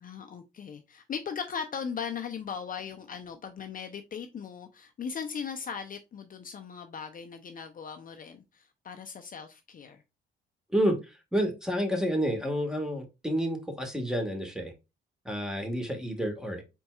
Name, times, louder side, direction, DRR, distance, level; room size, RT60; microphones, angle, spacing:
voice 1, 0.0-10.0, left 6 dB, 45° left, 0.6 m, -38 dB
voice 2, 10.7-14.7 15.2-16.6, equal, 5° right, 1.6 m, -29 dB
4.5 x 4.1 x 2.3 m
cardioid pair, 90°, 20 cm